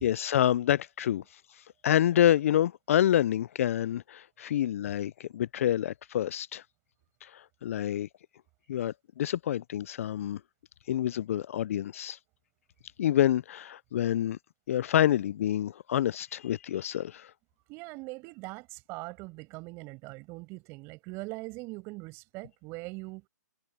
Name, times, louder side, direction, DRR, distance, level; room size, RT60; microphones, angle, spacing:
voice 1, 0.0-6.6 7.2-8.1 8.7-10.4 10.9-12.2 13.0-14.4 14.7-17.3, left 11 dB, 45° left, 0.4 m, -27 dB
voice 2, 17.7-23.3, right 25 dB, 25° right, 5.7 m, -41 dB
hypercardioid pair, 150°, 10 cm